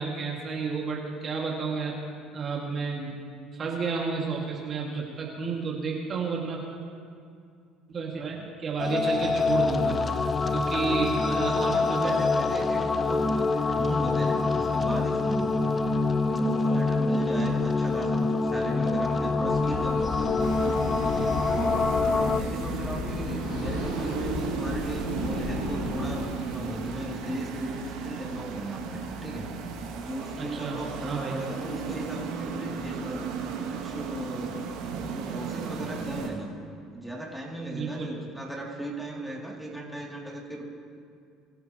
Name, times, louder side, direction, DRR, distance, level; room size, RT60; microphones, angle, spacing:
voice 1, 0.0-2.0 2.3-3.1 3.5-6.6 7.9-10.0 10.5-12.2 30.4-31.4 37.7-38.1, right 5 dB, 40° right, -2 dB, 2.2 m, -31 dB
sound 1, 8.8-22.4, left 3 dB, 30° left, 0.7 m, -25 dB
voice 2, 11.3-15.9 16.3-20.4 20.9-21.9 22.3-29.5 29.9-33.3 33.7-34.6 35.0-36.5 36.9-40.6, right 1 dB, ahead, -4 dB, 2.9 m, -37 dB
sound 2, 19.4-26.2, left 3 dB, 65° left, 2.3 m, -35 dB
sound 3, 20.4-36.3, right 5 dB, 80° right, 2.3 m, -35 dB
23.0 x 12.0 x 3.1 m, 2.4 s
supercardioid pair, 80°, 0 cm